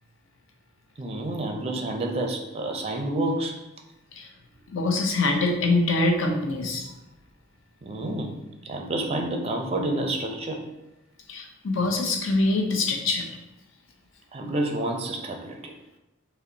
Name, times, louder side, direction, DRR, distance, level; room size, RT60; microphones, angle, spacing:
voice 1, 1.0-3.6 7.8-8.4 8.6-10.6 14.3-15.7, right 1 dB, 30° right, 3 dB, 0.4 m, -29 dB
voice 2, 4.7-6.9 11.3-13.3, left 2 dB, 70° left, 2 dB, 0.7 m, -24 dB
5.5 x 2.1 x 3.8 m, 0.93 s
head